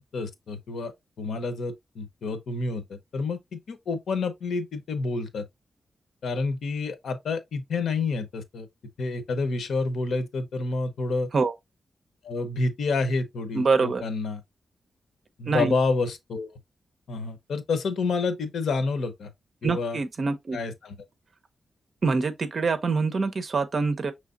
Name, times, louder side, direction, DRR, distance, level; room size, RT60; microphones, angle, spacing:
voice 1, 0.1-0.9 1.2-5.4 6.2-8.7 9.0-11.3 12.2-14.4 15.4-16.5 17.1-19.3 19.6-20.0 20.5-20.9, left 3 dB, 80° left, 0.9 m, -29 dB
voice 2, 13.5-14.0 15.5-15.7 19.6-20.6 22.0-24.1, right 4 dB, 45° right, 0.7 m, -25 dB
6.2 x 3.3 x 2.5 m
wide cardioid pair, 165°, 0 cm